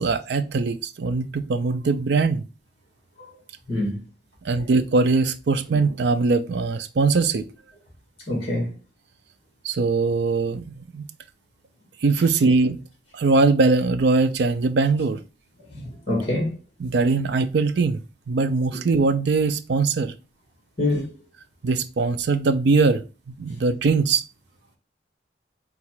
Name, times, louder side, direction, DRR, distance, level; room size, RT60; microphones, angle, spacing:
voice 1, 0.0-2.4 4.4-7.4 9.6-11.0 12.0-12.8 13.1-15.2 16.8-18.0 18.3-20.1 21.6-24.2, right 4 dB, 70° right, 0.4 m, -21 dB
voice 2, 3.7-4.0 8.3-8.7 15.7-16.6 20.8-21.1, left 1 dB, 35° left, 1.9 m, -25 dB
3.9 x 2.4 x 4.5 m
head